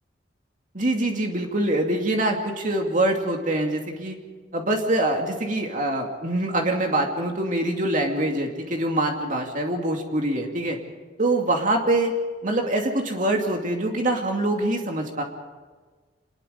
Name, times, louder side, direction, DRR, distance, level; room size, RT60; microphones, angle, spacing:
voice 1, 0.7-4.2 4.5-10.8 11.2-12.1 12.4-15.2, right 1 dB, 50° right, 2 dB, 2.5 m, -24 dB
27.0 x 20.5 x 5.3 m, 1.4 s
head